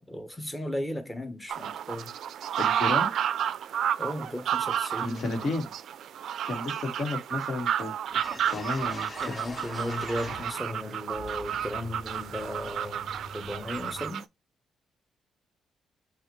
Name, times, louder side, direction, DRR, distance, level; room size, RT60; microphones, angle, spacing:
voice 1, 0.1-2.1 4.0-5.5 9.2-14.2, left 1 dB, 10° left, 1.0 m, -36 dB
sound 1, 1.5-14.2, right 9 dB, 70° right, 0.3 m, -31 dB
voice 2, 2.6-3.1 5.0-5.7 6.4-7.9 8.4-9.3, left 2 dB, 55° left, 1.7 m, -32 dB
sound 2, 7.7-7.8 8.1-10.8 11.1-14.1, left 2 dB, 35° left, 2.0 m, -44 dB
5.5 x 2.5 x 3.1 m
cardioid pair, 90°, 0 cm